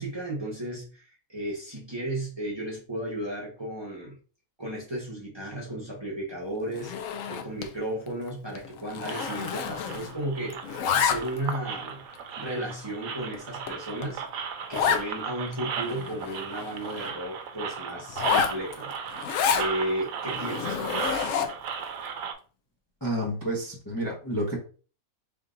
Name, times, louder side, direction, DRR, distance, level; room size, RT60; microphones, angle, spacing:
voice 1, 0.0-4.2 4.6-6.9 7.2-12.0 12.4-14.4 14.7-18.9 19.5-21.5, right 1 dB, 20° right, -4 dB, 1.1 m, -34 dB
Zipper (clothing), 6.7-7.8 8.1-8.3 8.6-10.2 10.5-11.5 12.1-12.2 12.8-12.9 13.3-13.4 13.7-13.8 14.0-14.1 14.7-15.1 15.5-15.6 15.8-17.1 18.1-19.7 20.3-21.7, left 7 dB, 70° left, 0.9 m, -29 dB
sound 1, 9.0-22.3, right 6 dB, 80° right, 1.0 m, -36 dB
voice 2, 23.0-24.6, right 1 dB, 15° left, -4 dB, 0.9 m, -30 dB
3.6 x 2.7 x 3.8 m, 0.38 s
omnidirectional pair, 1.4 m